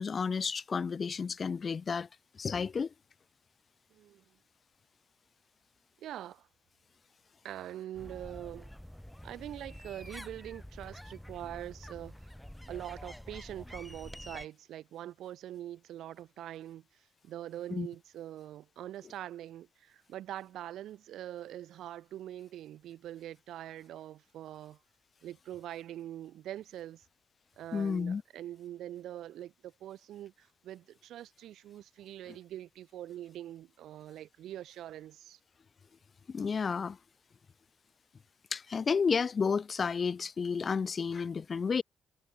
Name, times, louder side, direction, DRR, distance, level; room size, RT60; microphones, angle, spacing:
voice 1, 0.0-2.1 2.4-2.9 17.7-17.9 27.7-28.2 36.3-37.0 38.5-41.8, left 5 dB, 40° left, 0.5 m, -31 dB
voice 2, 3.9-4.2 6.0-6.5 7.4-8.7 9.2-12.3 12.7-16.8 17.2-24.8 25.2-27.0 27.6-35.4, right 12 dB, 80° right, 7.1 m, -44 dB
sound 1, 7.9-14.5, equal, 5° left, 4.0 m, -47 dB
cardioid pair, 90°, 0 cm